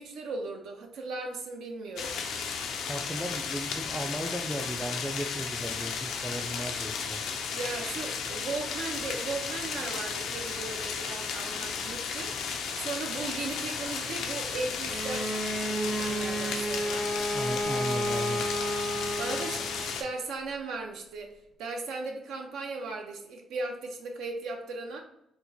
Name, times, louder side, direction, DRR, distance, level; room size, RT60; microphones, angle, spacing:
voice 1, 0.0-2.2 7.5-12.3 12.8-17.1 19.2-21.3 21.6-25.0, right 3 dB, 80° right, 3 dB, 0.6 m, -37 dB
sound 1, 2.0-20.0, left 6 dB, 80° left, 0.4 m, -34 dB
voice 2, 2.9-7.2 17.3-18.4, equal, 5° right, 6 dB, 0.3 m, -36 dB
Bowed string instrument, 14.9-20.0, equal, 35° right, 0.7 m, -32 dB
4.3 x 2.1 x 2.7 m, 0.81 s
cardioid pair, 90°, 0 cm